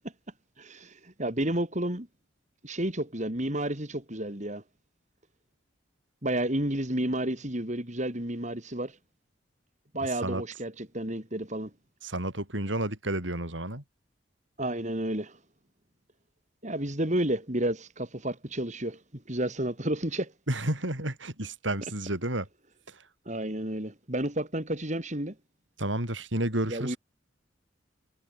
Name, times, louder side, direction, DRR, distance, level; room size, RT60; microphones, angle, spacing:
voice 1, 0.6-2.1 2.6-4.6 6.2-9.0 9.9-11.7 14.6-15.4 16.6-20.3 23.3-25.3 26.7-27.0, right 1 dB, 40° right, 4.4 m, -31 dB
voice 2, 12.0-13.8 20.5-22.5 22.9-23.0 25.8-27.0, right 1 dB, 80° right, 7.0 m, -31 dB
head